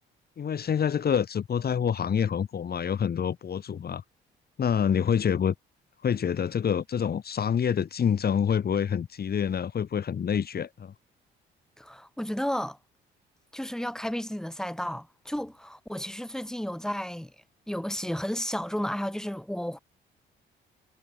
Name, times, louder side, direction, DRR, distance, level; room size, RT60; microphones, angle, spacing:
voice 1, 0.4-4.0 4.6-5.5 6.0-10.9, left 8 dB, 50° left, 3.5 m, -27 dB
voice 2, 11.8-12.8 13.5-17.3 17.7-19.8, equal, 5° left, 7.1 m, -32 dB
cardioid pair, 90°, 20 cm